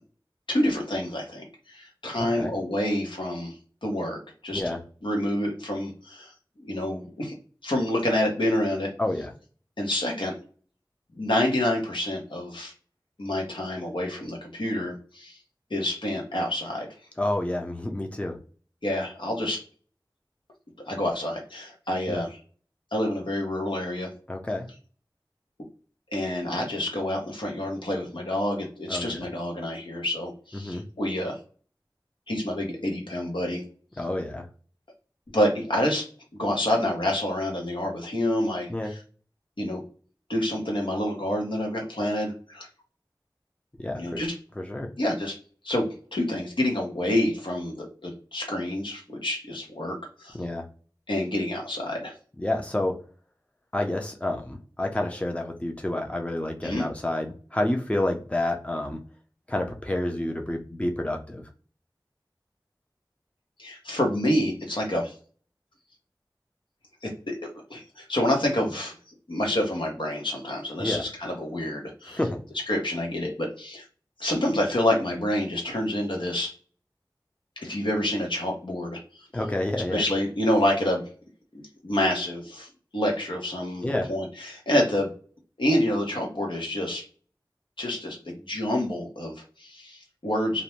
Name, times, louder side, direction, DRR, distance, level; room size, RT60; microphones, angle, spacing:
voice 1, 0.5-4.7 5.0-6.3 6.6-7.3 7.6-8.9 9.8-10.3 11.1-12.7 13.2-15.4 15.7-16.9 18.8-19.6 20.8-22.4 22.9-24.1 26.1-31.4 32.3-33.6 35.3-36.1 36.3-39.0 39.6-39.8 40.3-42.7 43.9-44.3 45.0-45.4 45.6-50.4 51.1-52.1 56.6-56.9 63.6-65.1 67.0-69.0 69.3-72.2 72.7-73.8 74.2-76.5 77.6-79.3 79.9-81.0 81.5-82.7 82.9-85.1 85.6-87.0 87.8-90.6, left 1 dB, 80° left, 0 dB, 0.9 m, -28 dB
voice 2, 9.0-9.3 17.2-18.4 22.1-22.2 24.3-24.7 28.9-29.3 30.5-30.8 34.0-34.5 38.7-38.9 43.8-44.2 44.6-44.9 50.3-50.7 52.4-52.9 53.7-59.0 59.5-61.4 70.8-71.0 72.1-72.4 79.3-80.0 83.8-84.1, left 1 dB, 15° left, 3 dB, 0.5 m, -29 dB
2.6 x 2.1 x 3.0 m, 0.40 s
wide cardioid pair, 45°, 8 cm